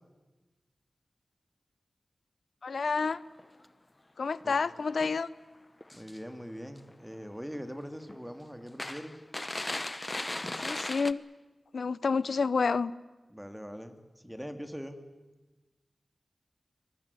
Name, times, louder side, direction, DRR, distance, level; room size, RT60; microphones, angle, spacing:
voice 1, 2.6-3.2 4.2-5.3 10.6-11.2 11.7-12.9, left 4 dB, 75° left, 19 dB, 0.7 m, -29 dB
sound 1, 3.0-3.1 3.4-3.7 4.4-4.5 5.0-5.1 5.8-6.4 6.8-7.2 7.5-7.6 8.1-8.3 8.8-11.1, left 1 dB, 25° left, 1.0 m, -37 dB
voice 2, 5.9-9.2 13.3-14.0 14.2-15.0, equal, 5° right, 8 dB, 2.5 m, -42 dB
23.0 x 20.5 x 9.8 m, 1.2 s
cardioid pair, 50°, 0 cm